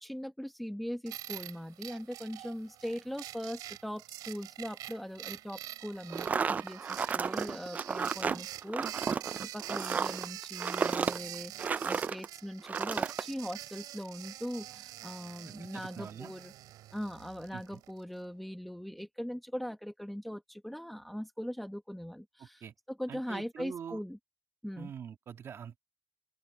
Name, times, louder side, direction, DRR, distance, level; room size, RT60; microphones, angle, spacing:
voice 1, 0.0-16.5 16.9-24.2 24.6-24.9, equal, ahead, 1.1 m, -40 dB
sound 1, 1.1-18.0, right 14 dB, 70° right, 3.2 m, -46 dB
sound 2, 6.1-12.3 12.6-13.2, right 6 dB, 25° right, 0.3 m, -32 dB
voice 2, 15.6-16.3 17.5-17.8 22.6-22.7 23.1-24.0 24.8-25.8, right 8 dB, 40° right, 2.2 m, -44 dB
open air
cardioid pair, 150°, 7 cm